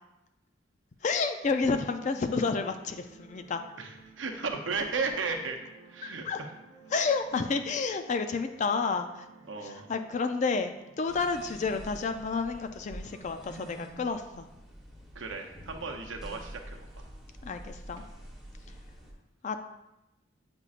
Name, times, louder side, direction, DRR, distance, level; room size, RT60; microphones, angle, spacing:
voice 1, 1.0-3.6 6.3-6.4 6.9-9.3 9.6-14.5 17.4-18.0 19.4-19.6, left 4 dB, 40° left, 7 dB, 0.4 m, -30 dB
sound 1, 2.2-14.2, right 4 dB, 25° right, 1.1 m, -56 dB
voice 2, 3.8-5.6 5.9-6.5 9.5-9.9 15.1-17.0 18.0-18.1, right 4 dB, 75° right, 3 dB, 0.7 m, -35 dB
sound 2, 11.1-19.1, right 1 dB, ahead, 1.1 m, -47 dB
8.3 x 5.2 x 2.5 m, 0.95 s
head